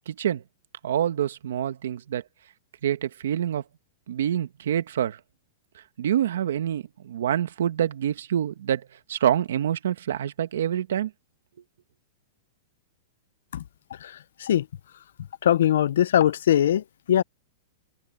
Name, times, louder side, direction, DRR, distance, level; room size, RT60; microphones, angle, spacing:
voice 1, 0.1-0.4 0.8-2.2 2.8-3.6 4.1-5.2 6.0-8.8 9.1-11.1, right 10 dB, 75° right, 1.5 m, -26 dB
voice 2, 15.4-16.8 17.1-17.2, left 10 dB, 75° left, 0.5 m, -20 dB
open air
supercardioid pair, 170°, 0 cm